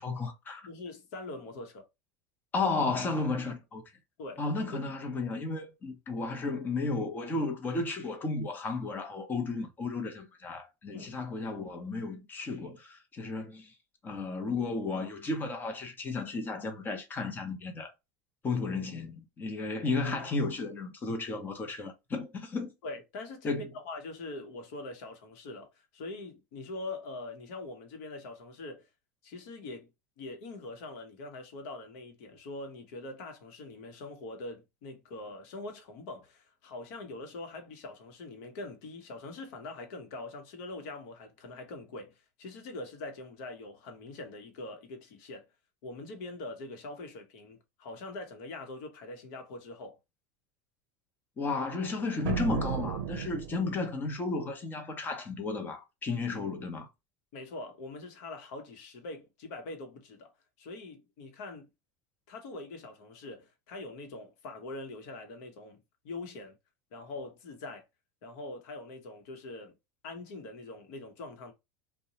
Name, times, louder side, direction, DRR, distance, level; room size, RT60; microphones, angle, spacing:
voice 1, 0.0-0.7 2.5-3.8 4.4-13.7 14.0-17.9 18.4-22.7 23.4-23.7 51.4-56.9, left 3 dB, 20° left, 0.7 m, -33 dB
voice 2, 0.7-1.9 4.2-4.4 4.8-4.9 10.9-11.1 22.8-28.9 29.2-29.9 30.2-45.4 45.8-50.0 57.3-60.3 60.6-61.7 62.3-65.8 66.0-66.5 66.9-67.8 68.2-69.8 70.0-71.5, left 2 dB, 65° left, 0.9 m, -43 dB
sound 1, 52.2-54.0, right 8 dB, 80° right, 0.5 m, -34 dB
2.7 x 2.1 x 2.8 m
supercardioid pair, 140°, 9 cm